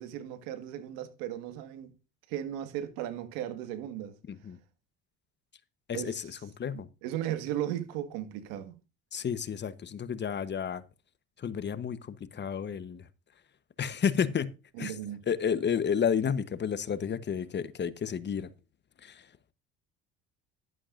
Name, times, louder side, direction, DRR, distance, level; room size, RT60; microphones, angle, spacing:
voice 1, 0.0-1.9 2.3-4.2 5.9-6.4 7.0-8.7 14.7-15.2, right 11 dB, 80° right, 1.8 m, -36 dB
voice 2, 5.9-6.3 6.6-6.9 9.1-10.8 11.4-13.0 13.8-14.5 14.8-14.9 15.3-18.5 19.0-19.2, left 7 dB, 35° left, 1.0 m, -31 dB
12.0 x 11.0 x 2.5 m
supercardioid pair, 85°, 31 cm